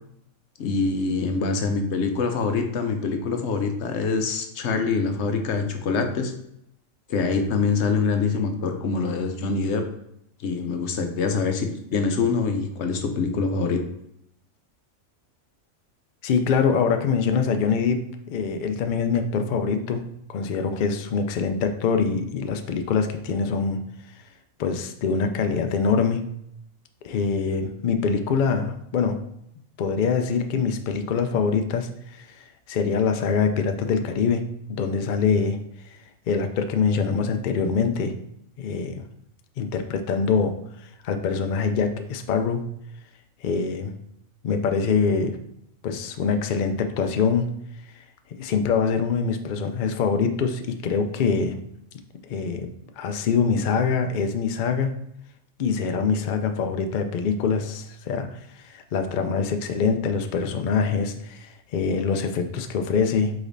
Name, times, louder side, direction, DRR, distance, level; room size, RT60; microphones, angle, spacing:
voice 1, 0.6-6.3 7.1-9.8 10.4-13.8, left 4 dB, 65° left, 6 dB, 0.9 m, -25 dB
voice 2, 16.2-18.0 18.3-20.0 20.3-23.8 24.1-24.2 24.6-26.2 27.0-29.2 29.8-34.4 34.7-35.6 35.9-36.0 36.3-38.1 38.6-39.0 39.6-42.6 43.4-43.9 44.4-45.4 45.8-47.5 47.9-48.0 48.4-51.6 52.3-52.7 53.0-54.9 55.6-63.3, left 5 dB, 90° left, 7 dB, 0.4 m, -24 dB
5.0 x 4.0 x 2.6 m, 0.77 s
omnidirectional pair, 1.4 m